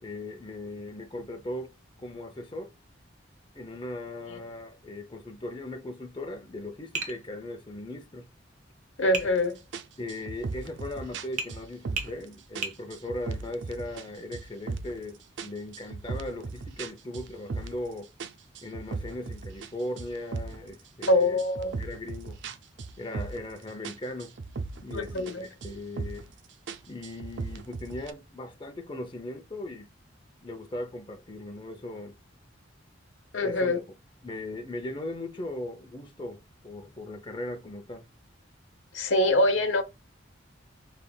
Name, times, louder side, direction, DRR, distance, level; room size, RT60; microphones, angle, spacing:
voice 1, 0.0-1.7 2.0-2.7 3.5-8.3 10.0-18.1 18.6-21.4 21.8-22.4 23.0-24.3 24.8-26.3 26.9-29.9 30.4-32.2 33.4-33.8 34.2-38.1, left 1 dB, 25° left, 0.7 m, -38 dB
Tap, 6.9-7.2 9.1-9.3 11.4-11.6 12.0-12.1 12.6-12.8, right 4 dB, 40° right, 0.9 m, -32 dB
voice 2, 9.0-9.6 21.1-21.8 24.9-25.5 33.3-33.8 38.9-39.8, left 1 dB, 85° left, 0.9 m, -24 dB
sound 1, 9.2-9.4 9.7-12.2 12.5-14.1 14.3-15.0 15.4-17.9 18.2-20.7 21.0-23.6 23.8-25.3 25.6-26.3 26.7-28.1, right 4 dB, 65° right, 0.5 m, -37 dB
5.5 x 3.3 x 2.3 m
head